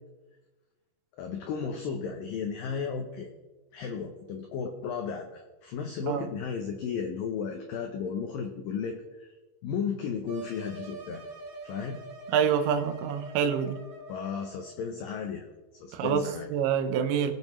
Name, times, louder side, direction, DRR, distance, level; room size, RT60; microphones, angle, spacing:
voice 1, 1.2-3.3 3.7-9.3 9.6-11.3 11.6-12.0 14.1-15.5 15.8-16.5, left 6 dB, 85° left, 4 dB, 2.0 m, -34 dB
sound 1, 10.3-14.7, right 2 dB, 55° right, 3.2 m, -44 dB
voice 2, 12.3-13.8 15.9-17.3, right 8 dB, 85° right, 9 dB, 3.2 m, -26 dB
20.5 x 7.3 x 3.1 m, 1.2 s
omnidirectional pair, 5.1 m